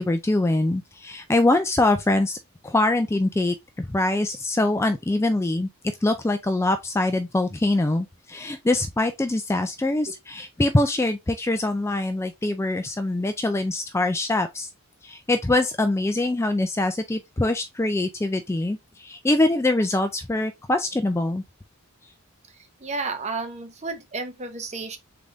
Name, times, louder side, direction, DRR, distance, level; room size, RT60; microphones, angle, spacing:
voice 1, 0.0-2.4 2.6-5.7 6.0-14.7 15.0-21.4, left 2 dB, 10° left, 0.3 m, -23 dB
voice 2, 22.8-25.0, right 3 dB, 30° right, 0.8 m, -32 dB
3.9 x 3.5 x 3.5 m
head